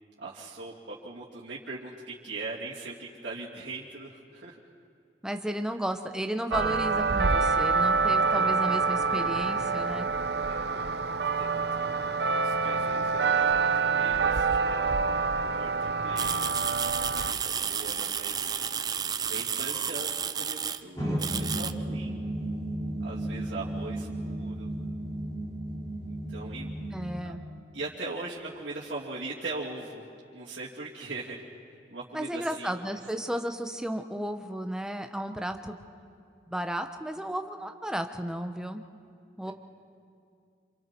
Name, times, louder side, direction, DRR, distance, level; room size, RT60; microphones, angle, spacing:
voice 1, 0.2-4.6 10.3-10.9 11.4-16.5 17.2-18.6 18.8-19.0 19.2-21.1 21.3-22.3 23.0-24.7 26.1-26.7 27.0-27.4 27.7-31.4 31.9-32.7 39.4-39.5, right 3 dB, 85° right, -8 dB, 2.7 m, -40 dB
voice 2, 5.2-10.1 26.9-27.4 32.1-35.8 36.5-38.8 39.4-39.5, right 1 dB, 5° right, 6 dB, 0.9 m, -33 dB
sound 1, 6.5-17.3, right 4 dB, 65° right, 0.7 m, -26 dB
sound 2, 16.2-20.8 21.2-21.7, right 7 dB, 20° right, 0.5 m, -31 dB
sound 3, 21.0-27.2, right 1 dB, 20° left, 5.1 m, -34 dB
28.0 x 27.5 x 4.5 m, 2.5 s
head